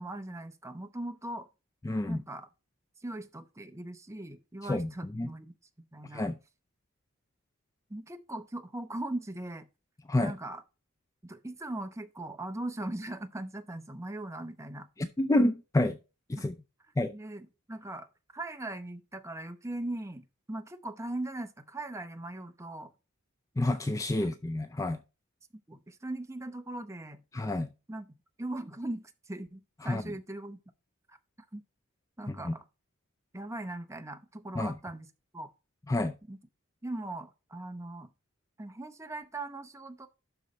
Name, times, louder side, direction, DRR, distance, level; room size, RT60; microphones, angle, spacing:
voice 1, 0.0-1.5 2.1-2.5 3.0-5.5 5.9-6.3 7.9-9.6 10.2-10.6 11.2-14.9 16.4-16.5 17.1-18.1 18.3-22.9 24.2-24.3 25.7-27.2 27.9-28.1 28.4-30.6 31.1-31.2 31.5-31.6 32.2-32.6 33.3-35.1 35.3-35.5 36.3-36.4 36.8-38.1 38.6-40.1, right 1 dB, 15° right, 0.7 m, -39 dB
voice 2, 1.9-2.2 4.7-4.9 5.2-5.3 6.1-6.3 10.1-10.3 15.0-16.0 16.3-16.5 17.0-17.1 23.6-25.0 27.3-27.7 29.8-30.0 32.5-32.6 34.6-34.7 35.9-36.1, left 1 dB, 15° left, 0.3 m, -28 dB
11.5 x 4.0 x 4.2 m
head